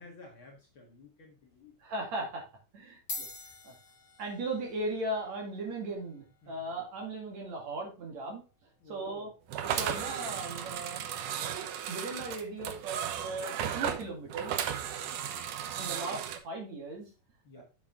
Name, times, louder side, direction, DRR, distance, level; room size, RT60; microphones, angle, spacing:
voice 1, 0.0-1.7 6.4-6.6 8.8-9.3 15.0-15.3 17.4-17.6, left 3 dB, 45° left, -1 dB, 2.1 m, -53 dB
sound 1, 1.5-1.7 2.6-2.7 2.9-11.6, left 2 dB, 20° left, 3.4 m, -49 dB
voice 2, 1.8-2.4 2.7-3.3 3.6-3.7 4.2-8.4 8.9-9.3 9.7-11.0 11.9-14.5 15.8-17.1 17.6-17.7, right 2 dB, 55° right, 1 dB, 3.3 m, -37 dB
sound 2, 9.5-16.4, right 9 dB, 75° right, 2.4 m, -35 dB
7.7 x 7.1 x 3.7 m, 0.30 s
omnidirectional pair, 3.8 m